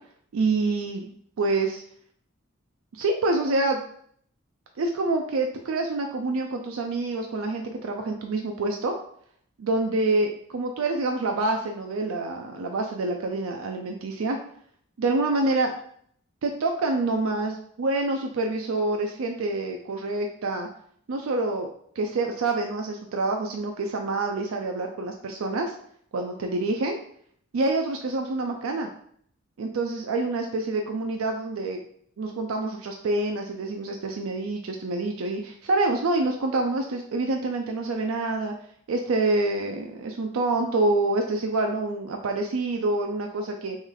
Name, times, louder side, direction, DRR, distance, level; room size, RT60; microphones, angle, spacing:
voice 1, 0.3-1.1 1.4-1.8 2.9-3.8 4.8-9.0 9.6-14.4 15.0-15.7 16.4-20.7 21.1-21.7 22.0-25.7 26.1-27.0 27.5-28.9 29.6-31.8 32.2-38.5 38.9-43.8, right 2 dB, 80° right, 3 dB, 0.4 m, -27 dB
3.2 x 3.1 x 3.7 m, 0.63 s
head